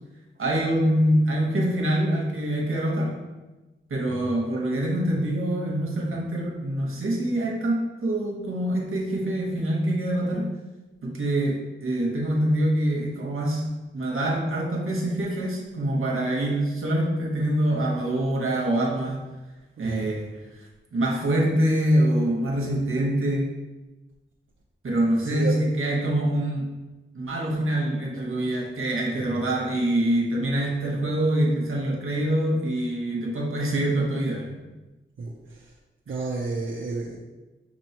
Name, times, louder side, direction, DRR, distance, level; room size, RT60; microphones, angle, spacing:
voice 1, 0.4-3.1 3.9-10.5 11.0-13.7 13.9-19.2 19.8-20.3 20.9-23.5 24.8-26.7 27.1-34.6, right 1 dB, 80° right, -2 dB, 1.0 m, -25 dB
voice 2, 19.8-20.2 25.2-25.6 29.1-29.4 35.2-35.7 36.1-37.2, right 3 dB, 65° right, -2 dB, 0.6 m, -32 dB
6.1 x 3.1 x 2.8 m, 1.1 s
cardioid pair, 50°, 21 cm